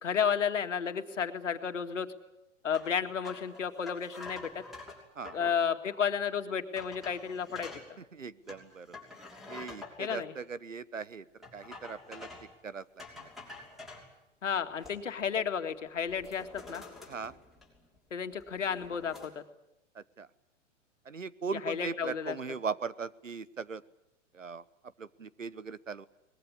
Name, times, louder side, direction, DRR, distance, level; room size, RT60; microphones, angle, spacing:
voice 1, 0.0-2.1 2.6-4.6 5.3-7.7 10.0-10.3 14.4-16.8 18.1-19.4 21.6-22.4, left 7 dB, 75° left, 8 dB, 2.1 m, -32 dB
sound 1, 2.7-5.6 6.2-6.3 6.8-7.9 8.5-10.2 11.4-12.6 13.0-14.1 14.6-15.2 15.6-15.8 16.1-18.0 18.3-19.3, left 3 dB, ahead, 6.0 m, -48 dB
voice 2, 8.1-9.0 9.5-11.2 11.5-12.3 12.6-13.3 17.1-17.4 19.9-20.3 21.0-23.8 24.3-24.6 25.0-26.1, right 5 dB, 90° right, 17 dB, 1.1 m, -39 dB
23.0 x 21.0 x 9.8 m, 0.88 s
figure-of-eight pair, 110°, 37 cm